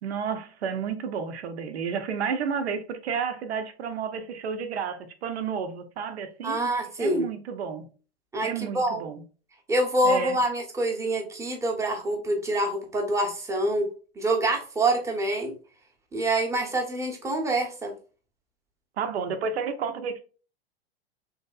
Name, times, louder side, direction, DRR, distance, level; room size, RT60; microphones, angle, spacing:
voice 1, 0.0-6.6 7.0-7.9 8.4-9.2 10.0-10.4 19.0-20.2, right 6 dB, 80° right, 0.6 m, -31 dB
voice 2, 6.4-7.3 8.3-9.1 9.7-13.9 14.2-15.5 16.1-17.9, right 1 dB, 10° right, 0.7 m, -26 dB
3.2 x 2.7 x 2.3 m
hypercardioid pair, 110°, 32 cm